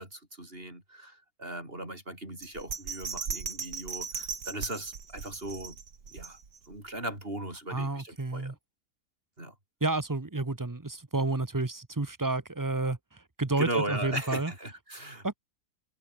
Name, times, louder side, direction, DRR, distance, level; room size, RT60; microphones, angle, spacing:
voice 1, 0.0-5.8 6.1-6.4 6.7-8.6 9.4-9.6 13.6-15.4, right 1 dB, 35° right, 7.3 m, -38 dB
Bell, 2.4-6.8 7.2-7.3, right 6 dB, 85° right, 2.8 m, -38 dB
voice 2, 7.7-8.5 9.8-14.5 15.2-15.3, right 2 dB, 15° right, 0.8 m, -30 dB
omnidirectional pair, 1.7 m